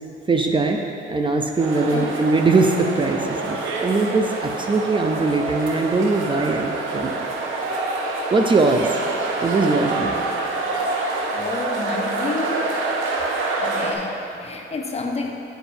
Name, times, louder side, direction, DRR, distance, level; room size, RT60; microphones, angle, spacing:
voice 1, 0.3-0.8 1.1-7.1 8.3-9.0 9.4-10.2, right 3 dB, 25° right, 3 dB, 0.5 m, -21 dB
sound 1, 1.6-13.9, right 3 dB, 85° right, 0.8 m, -26 dB
voice 2, 11.3-12.8 13.6-15.3, left 3 dB, 30° left, 2 dB, 0.8 m, -29 dB
8.8 x 7.0 x 2.7 m, 2.9 s
cardioid pair, 90°, 20 cm